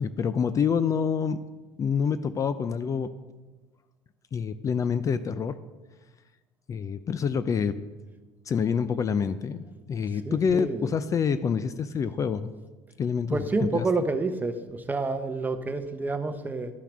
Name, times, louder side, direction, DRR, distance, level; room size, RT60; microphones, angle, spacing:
voice 1, 0.0-1.4 1.8-3.1 4.3-5.6 6.7-7.8 8.5-9.6 9.9-12.5 13.0-13.9, left 6 dB, 35° left, 13 dB, 0.5 m, -27 dB
voice 2, 10.2-10.9 13.3-16.7, right 3 dB, 15° right, 9 dB, 0.9 m, -29 dB
12.0 x 5.7 x 6.1 m, 1.2 s
cardioid pair, 110°, 10 cm